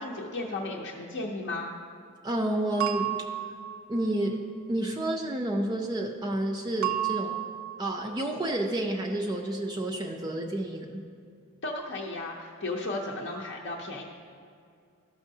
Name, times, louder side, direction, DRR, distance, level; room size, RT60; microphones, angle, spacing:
voice 1, 0.0-1.7 11.6-14.0, left 2 dB, 55° left, -2 dB, 0.6 m, -34 dB
voice 2, 2.2-3.1 3.9-4.4 4.7-7.4 7.8-11.0, right 1 dB, 20° right, 1 dB, 0.4 m, -30 dB
sound 1, 2.8-4.1 6.8-8.0, right 13 dB, 75° right, 0.5 m, -32 dB
13.0 x 6.2 x 2.7 m, 2.3 s
head